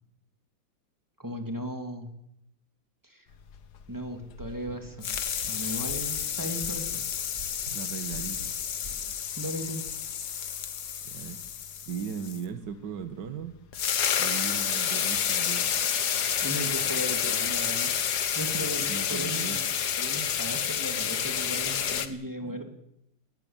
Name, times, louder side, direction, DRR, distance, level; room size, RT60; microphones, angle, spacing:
voice 1, 1.2-2.1 3.0-3.3 3.9-5.1 5.5-7.0 9.4-9.8 16.4-17.9 18.3-22.7, equal, 10° right, 5 dB, 2.4 m, -36 dB
sound 1, 3.5-4.8 5.0-12.4 13.4-13.5 13.7-22.1, left 8 dB, 60° left, 1.7 m, -30 dB
sound 2, 4.1-9.1, right 1 dB, 45° right, 5.2 m, -46 dB
voice 2, 7.7-8.5 11.1-11.4 11.9-13.6 14.2-15.6 18.8-19.6 22.4-22.6, right 7 dB, 65° right, 10 dB, 1.9 m, -37 dB
20.0 x 16.5 x 8.7 m, 0.81 s
omnidirectional pair, 2.1 m